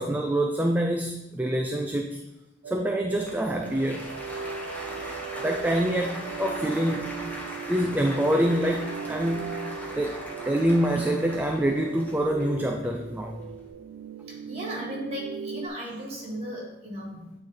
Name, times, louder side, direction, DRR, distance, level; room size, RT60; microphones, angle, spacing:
voice 1, 0.0-2.2 2.7-4.1 5.4-7.2 7.7-13.4 17.2-17.3, right 1 dB, 10° right, 3 dB, 0.3 m, -26 dB
sound 1, 2.6-15.7, right 6 dB, 85° right, 0.4 m, -38 dB
Applause, 3.1-13.7, equal, 10° left, 1.0 m, -40 dB
voice 2, 14.3-17.2, equal, 35° right, -3 dB, 2.0 m, -36 dB
8.7 x 3.2 x 4.1 m, 0.95 s
head